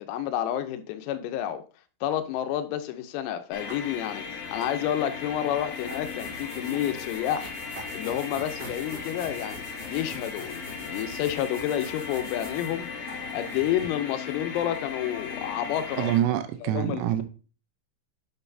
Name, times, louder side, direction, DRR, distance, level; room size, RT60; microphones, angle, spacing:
voice 1, 0.0-1.6 2.0-4.3 4.5-7.6 7.9-16.1 16.6-17.2, left 11 dB, 90° left, 3.5 m, -30 dB
sound 1, 3.5-16.2, left 5 dB, 70° left, 3.3 m, -37 dB
sound 2, 3.7-3.8 4.6-4.8 5.9-6.0 6.7-7.0 7.8-7.9 8.6-8.9 9.3-9.6 10.0-12.2 12.7-16.3, right 2 dB, 55° right, 2.6 m, -49 dB
sound 3, 5.6-13.9, equal, 20° left, 2.4 m, -46 dB
voice 2, 16.0-17.2, right 12 dB, 80° right, 3.2 m, -25 dB
10.0 x 6.3 x 2.7 m
omnidirectional pair, 6.0 m